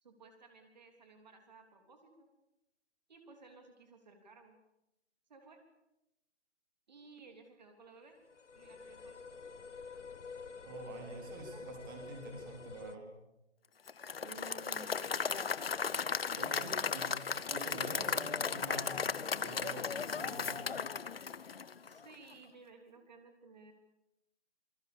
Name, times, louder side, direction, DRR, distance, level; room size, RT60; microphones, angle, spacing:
voice 1, 0.0-2.3 3.1-4.6 5.3-5.6 6.9-8.2 8.6-9.2 11.5-11.6 14.2-15.6 16.7-17.1 17.5-17.8 21.8-23.7, right 3 dB, 35° right, 4 dB, 3.5 m, -56 dB
sound 1, 8.2-13.0, left 5 dB, 80° left, 1.5 m, -49 dB
voice 2, 10.7-13.1 16.3-20.8, right 3 dB, 20° right, 2 dB, 3.9 m, -47 dB
Applause / Crowd, 13.9-22.0, left 6 dB, 55° left, 1.0 m, -36 dB
27.5 x 23.0 x 7.0 m, 0.89 s
hypercardioid pair, 170°, 35 cm